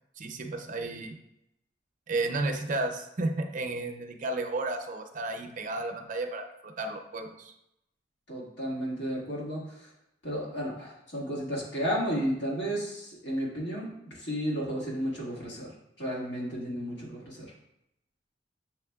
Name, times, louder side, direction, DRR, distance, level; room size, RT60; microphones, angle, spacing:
voice 1, 0.2-1.2 2.1-7.5, right 2 dB, 45° right, 5 dB, 0.5 m, -33 dB
voice 2, 8.3-9.9 10.2-15.7 16.0-17.5, equal, 90° left, -5 dB, 1.7 m, -33 dB
7.0 x 3.3 x 2.3 m, 0.83 s
head